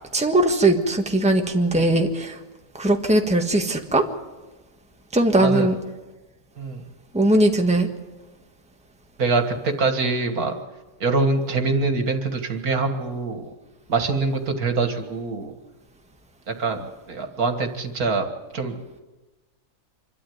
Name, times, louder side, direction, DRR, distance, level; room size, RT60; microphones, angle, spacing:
voice 1, 0.1-2.4 2.8-4.0 5.1-5.7 7.1-7.9, right 1 dB, 5° right, 3 dB, 1.5 m, -19 dB
voice 2, 5.4-5.7 6.6-6.8 9.2-10.5 11.0-13.5 13.9-15.5 16.6-18.3 18.5-18.8, right 3 dB, 75° right, 6 dB, 2.3 m, -24 dB
25.5 x 12.5 x 9.5 m, 1.1 s
omnidirectional pair, 1.6 m